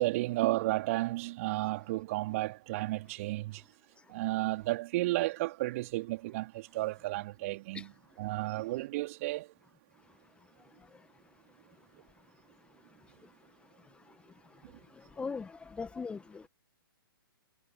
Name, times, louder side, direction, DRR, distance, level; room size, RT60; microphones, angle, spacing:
voice 1, 0.0-3.6 4.1-7.9 8.2-9.5, right 19 dB, 40° right, 3.7 m, -32 dB
voice 2, 14.9-16.5, left 5 dB, 10° left, 1.8 m, -40 dB
figure-of-eight pair, 120°, 12 cm